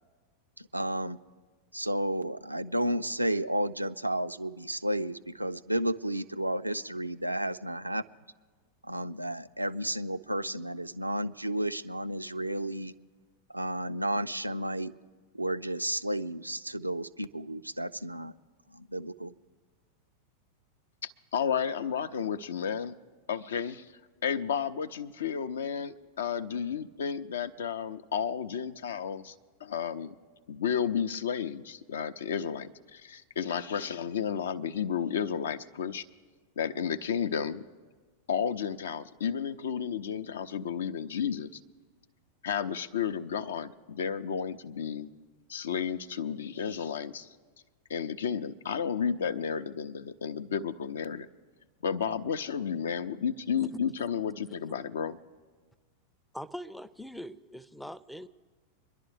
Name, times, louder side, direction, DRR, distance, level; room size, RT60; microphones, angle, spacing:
voice 1, 0.6-1.2 1.7-8.0 8.9-12.9 13.5-14.9 15.3-18.3 18.7-19.3, right 1 dB, 85° right, 11 dB, 0.3 m, -32 dB
voice 2, 21.0-23.0 23.3-23.9 24.2-29.3 29.6-30.1 30.5-36.1 36.6-37.6 38.3-41.5 42.4-45.1 45.5-47.3 47.9-51.3 51.8-55.2, left 7 dB, 65° left, 13 dB, 0.4 m, -32 dB
voice 3, 53.6-54.1 56.3-58.3, equal, ahead, 14 dB, 0.4 m, -42 dB
24.5 x 11.0 x 3.3 m, 1.4 s
figure-of-eight pair, 90°, 0 cm